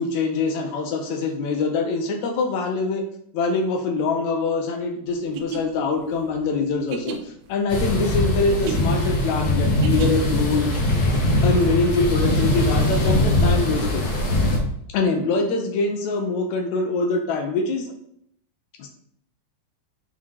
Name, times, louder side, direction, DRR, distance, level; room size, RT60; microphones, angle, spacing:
voice 1, 0.0-3.0 3.3-10.7 11.4-14.1 14.9-17.9 18.8-18.9, left 3 dB, 70° left, 5 dB, 1.9 m, -24 dB
sound 1, 5.2-10.5, right 4 dB, 75° right, 1.7 m, -35 dB
sound 2, 7.7-14.6, left 1 dB, 40° left, 1.6 m, -21 dB
7.3 x 4.3 x 4.5 m, 0.69 s
omnidirectional pair, 3.9 m